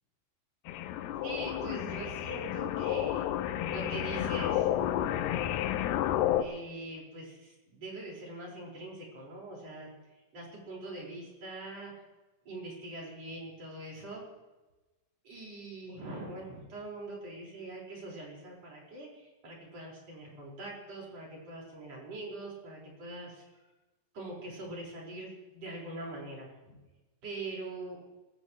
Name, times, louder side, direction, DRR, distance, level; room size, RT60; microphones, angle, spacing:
sound 1, 0.7-6.4, left 11 dB, 80° left, 2.7 m, -31 dB
voice 1, 1.2-3.4 3.7-4.7 6.4-12.0 12.5-14.2 15.2-23.7 24.1-26.8 27.2-28.0, right 2 dB, 40° right, -3 dB, 5.8 m, -43 dB
24.0 x 15.0 x 3.1 m, 1.1 s
omnidirectional pair, 4.7 m